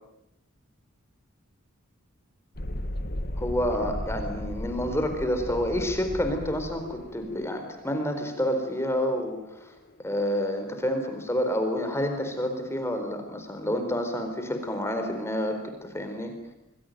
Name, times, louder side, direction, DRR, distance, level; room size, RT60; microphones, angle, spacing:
Thunderstorm, 2.5-10.0, left 1 dB, 45° left, 2.0 m, -36 dB
voice 1, 3.4-16.3, equal, 10° left, 6 dB, 4.2 m, -29 dB
28.0 x 21.0 x 9.2 m, 0.88 s
head